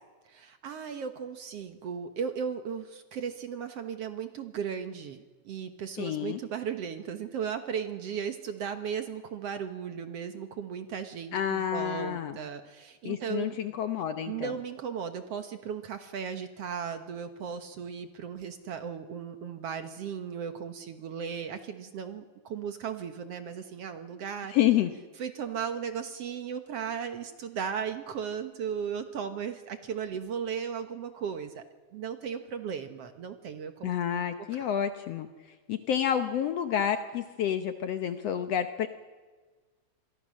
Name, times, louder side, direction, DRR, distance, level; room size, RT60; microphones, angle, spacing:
voice 1, 0.3-13.6 14.3-24.5 25.2-31.6 31.9-34.3 34.5-34.7, right 7 dB, 60° right, 8 dB, 1.9 m, -36 dB
voice 2, 6.0-6.4 11.3-12.4 13.0-14.5 24.5-24.9 33.8-38.9, left 10 dB, 65° left, 8 dB, 1.7 m, -29 dB
26.5 x 23.0 x 6.4 m, 1.3 s
omnidirectional pair, 3.7 m